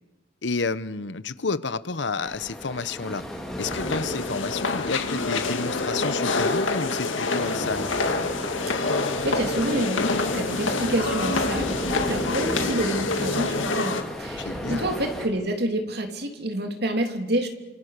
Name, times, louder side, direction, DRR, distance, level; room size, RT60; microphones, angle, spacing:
voice 1, 0.4-3.2 3.6-7.9 14.4-14.9, left 4 dB, 65° left, 15 dB, 1.0 m, -30 dB
sound 1, 2.2-15.3, equal, 5° left, 3.6 m, -35 dB
sound 2, 3.6-14.0, left 3 dB, 90° left, 2.2 m, -26 dB
voice 2, 8.8-10.1 10.3-17.5, right 1 dB, 55° right, 4 dB, 3.1 m, -28 dB
28.0 x 26.5 x 6.7 m, 1.2 s
head